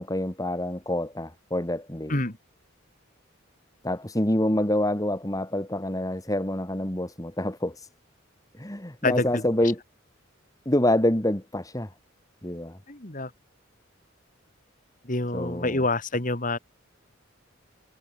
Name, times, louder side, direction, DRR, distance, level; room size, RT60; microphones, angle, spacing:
voice 1, 0.0-2.2 3.8-7.9 8.5-9.8 10.7-11.9 12.4-12.8 15.3-15.8, left 1 dB, 15° left, 2.2 m, -27 dB
voice 2, 9.0-9.4 12.9-13.3 15.0-16.6, left 2 dB, 40° left, 2.8 m, -27 dB
head